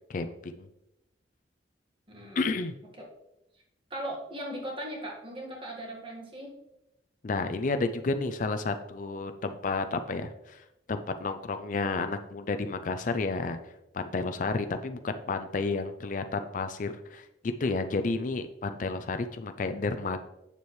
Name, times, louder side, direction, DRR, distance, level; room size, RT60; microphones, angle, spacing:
voice 1, 0.1-0.7 2.4-2.7 7.2-20.2, left 3 dB, 45° left, 8 dB, 0.4 m, -31 dB
voice 2, 2.1-2.4 3.0-3.1 3.9-6.5, right 1 dB, 30° right, -1 dB, 1.7 m, -38 dB
8.3 x 7.0 x 3.2 m, 0.89 s
head